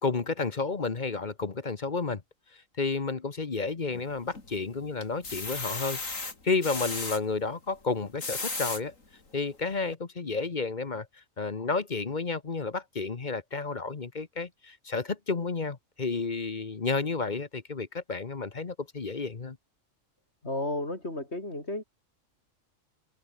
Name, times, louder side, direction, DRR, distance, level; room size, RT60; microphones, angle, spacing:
voice 1, 0.0-2.2 2.5-6.0 6.4-8.9 9.3-11.1 11.4-19.6, left 4 dB, 35° left, 1.3 m, -31 dB
sound 1, 3.9-4.5 5.0-7.2 8.0-8.8 9.4-9.5 9.9-10.0, left 3 dB, 80° left, 4.1 m, -35 dB
voice 2, 20.4-21.8, left 1 dB, 55° left, 6.8 m, -33 dB
omnidirectional pair, 1.4 m